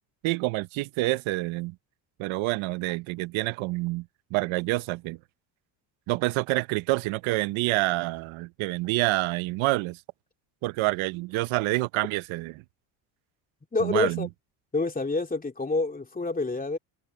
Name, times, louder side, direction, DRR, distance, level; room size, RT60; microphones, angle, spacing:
voice 1, 0.2-1.7 2.2-4.0 4.3-5.2 6.1-10.0 10.6-12.5 13.8-14.3, right 20 dB, 75° right, 0.9 m, -27 dB
voice 2, 13.7-14.3 14.7-16.8, left 3 dB, 15° left, 3.1 m, -27 dB
cardioid pair, 95°, 48 cm